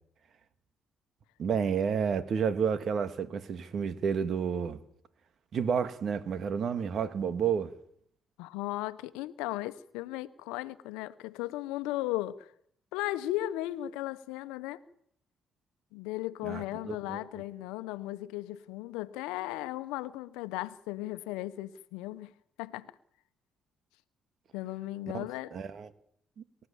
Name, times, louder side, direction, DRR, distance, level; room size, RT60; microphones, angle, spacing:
voice 1, 1.4-4.8 5.5-7.7 16.4-17.2 25.1-25.3 25.5-25.9, right 7 dB, 60° right, 2.1 m, -30 dB
voice 2, 8.4-12.5 12.9-14.8 15.9-22.3 22.6-22.9 24.5-25.6, left 16 dB, 80° left, 1.0 m, -36 dB
28.0 x 15.0 x 7.3 m
hypercardioid pair, 50°, 0 cm